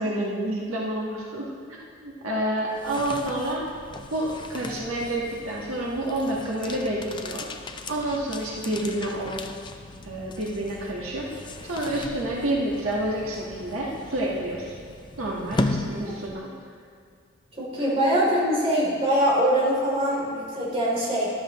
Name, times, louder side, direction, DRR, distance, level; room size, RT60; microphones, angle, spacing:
voice 1, 0.0-3.6 4.1-7.5 7.9-9.4 10.0-14.8 15.2-16.5, right 1 dB, 85° right, -3 dB, 1.4 m, -29 dB
sound 1, 2.6-16.6, left 2 dB, 20° left, 0.4 m, -36 dB
voice 2, 17.6-21.3, equal, 30° right, -6 dB, 3.1 m, -23 dB
12.5 x 12.0 x 3.1 m, 2.1 s
head